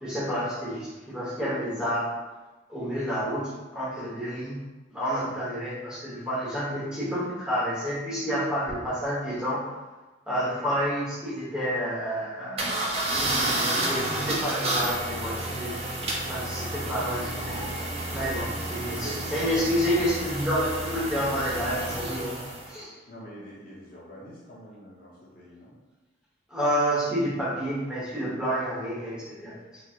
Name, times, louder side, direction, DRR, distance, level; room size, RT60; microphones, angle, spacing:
voice 1, 0.0-2.1 2.7-4.6 4.9-9.6 10.3-15.7 16.3-22.4 22.7-22.9 26.5-29.8, equal, 5° right, -10 dB, 1.3 m, -29 dB
sound 1, 12.6-22.7, right 1 dB, 35° right, 0.6 m, -30 dB
voice 2, 16.3-16.7 18.6-20.0 23.1-25.7, equal, 50° left, -7 dB, 0.9 m, -44 dB
4.2 x 3.1 x 2.5 m, 1.2 s
head